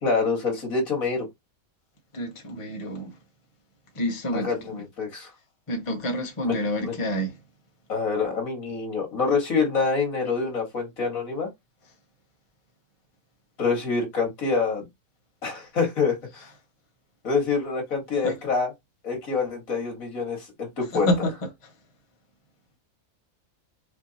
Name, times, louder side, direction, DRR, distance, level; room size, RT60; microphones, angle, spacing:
voice 1, 0.0-1.3 4.3-5.3 6.4-6.6 6.8-6.9 7.9-11.5 13.6-14.9 15.4-16.4 17.2-18.7 19.0-21.1, left 4 dB, 75° left, 2.3 m, -26 dB
voice 2, 2.1-3.2 3.9-4.8 5.7-7.4 18.2-18.4 20.9-21.3, left 1 dB, 25° left, 1.0 m, -28 dB
5.5 x 2.9 x 2.8 m
omnidirectional pair, 1.5 m